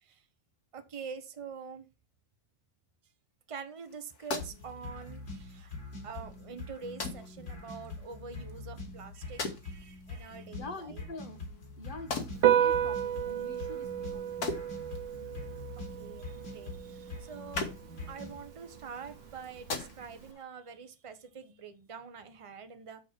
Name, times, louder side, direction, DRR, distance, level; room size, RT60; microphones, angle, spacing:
voice 1, 0.7-1.9 3.5-5.8 6.0-11.0 15.7-17.7 18.1-23.0, right 6 dB, 50° right, 0.3 m, -45 dB
sound 1, 3.8-20.4, left 3 dB, 55° left, 1.9 m, -44 dB
sound 2, 4.4-18.4, left 3 dB, 90° left, 3.8 m, -44 dB
voice 2, 10.5-11.5 11.8-14.4, left 2 dB, 30° left, 1.1 m, -45 dB
Piano, 12.3-20.3, right 10 dB, 80° right, 1.5 m, -33 dB
6.7 x 4.7 x 6.0 m
omnidirectional pair, 2.1 m